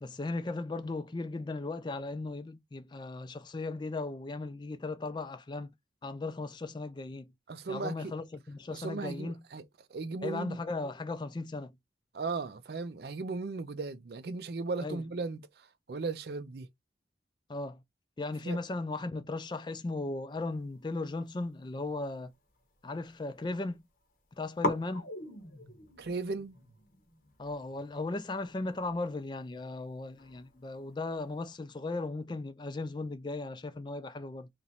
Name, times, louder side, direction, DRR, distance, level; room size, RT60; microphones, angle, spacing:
voice 1, 0.0-5.7 6.0-7.3 7.7-9.4 10.2-11.8 14.8-15.0 17.5-17.8 18.2-22.3 22.8-23.8 24.4-25.1 27.4-34.5, left 2 dB, 25° left, 0.3 m, -37 dB
voice 2, 7.5-8.1 8.7-9.6 9.9-10.6 12.1-16.7 18.4-18.6 26.0-26.6, right 4 dB, 60° right, 0.4 m, -37 dB
sound 1, 21.0-22.9 23.1-23.8 24.1-24.2 24.6-31.4, left 1 dB, 50° left, 0.8 m, -41 dB
3.0 x 2.5 x 4.1 m
head